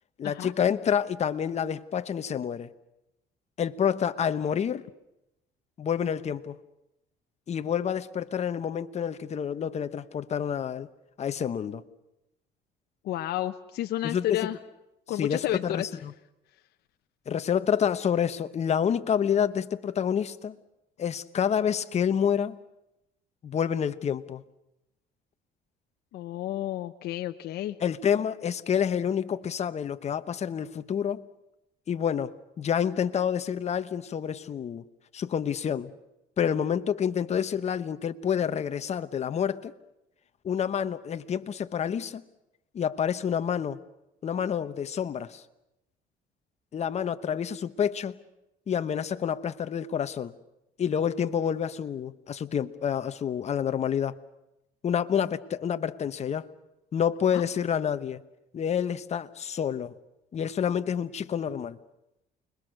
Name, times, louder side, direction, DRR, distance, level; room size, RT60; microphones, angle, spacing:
voice 1, 0.2-2.7 3.6-4.8 5.8-6.6 7.5-10.9 11.2-11.8 14.0-14.4 15.2-16.1 17.3-20.6 21.0-22.6 23.4-24.4 27.8-31.3 31.9-34.8 35.1-35.9 36.4-39.7 40.4-42.2 42.7-43.8 44.2-45.4 46.7-48.2 48.7-50.3 50.8-54.1 54.8-56.5 56.9-58.2 58.5-59.9 60.3-61.8, left 8 dB, 40° left, 1.1 m, -28 dB
voice 2, 13.0-14.6 15.1-15.9 26.1-27.8 57.3-57.4, left 13 dB, 70° left, 0.9 m, -31 dB
29.5 x 21.5 x 6.5 m
cardioid pair, 110°, 17 cm